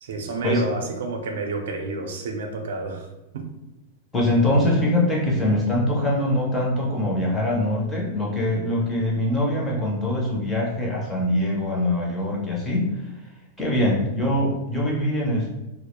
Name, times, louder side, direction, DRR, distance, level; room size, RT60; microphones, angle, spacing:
voice 1, 0.0-3.1 3.3-3.5, right 3 dB, 70° right, 3 dB, 0.4 m, -29 dB
voice 2, 4.1-12.9 13.6-15.5, left 1 dB, 10° left, -3 dB, 0.4 m, -23 dB
2.2 x 2.0 x 2.9 m, 0.96 s
supercardioid pair, 175°, 0 cm